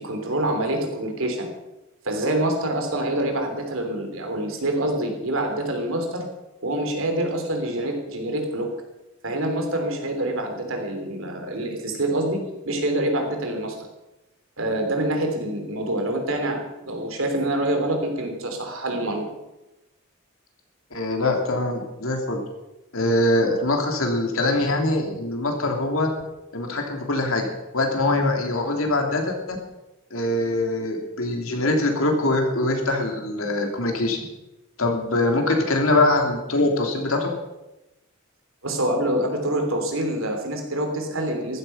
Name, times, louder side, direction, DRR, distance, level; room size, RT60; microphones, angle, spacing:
voice 1, 0.0-1.5 2.0-6.2 6.6-8.7 9.2-13.7 14.6-16.6 16.8-19.3 38.6-41.6, right 1 dB, 75° right, 4 dB, 3.3 m, -26 dB
voice 2, 20.9-22.4 22.9-26.1 26.5-29.6 30.1-34.2 34.8-37.3, left 2 dB, 85° left, 2 dB, 3.1 m, -23 dB
15.0 x 13.0 x 5.7 m, 0.99 s
head